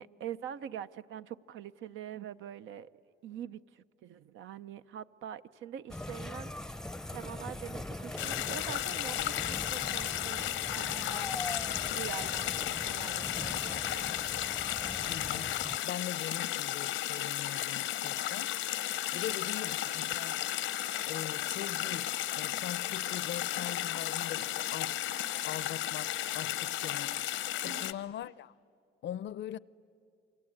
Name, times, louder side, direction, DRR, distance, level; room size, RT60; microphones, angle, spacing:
voice 1, 0.0-2.9 3.2-10.4 10.7-11.4 11.9-14.2 19.1-19.2 27.6-27.9, right 10 dB, 80° right, 0.7 m, -44 dB
sound 1, 5.9-15.8, left 1 dB, 5° left, 0.6 m, -42 dB
sound 2, 8.2-27.9, left 13 dB, 90° left, 0.8 m, -34 dB
voice 2, 15.1-18.7 19.1-20.5 21.1-27.3 27.6-28.5 29.0-29.6, left 11 dB, 65° left, 0.6 m, -42 dB
28.0 x 24.0 x 8.7 m
cardioid pair, 90°, 20 cm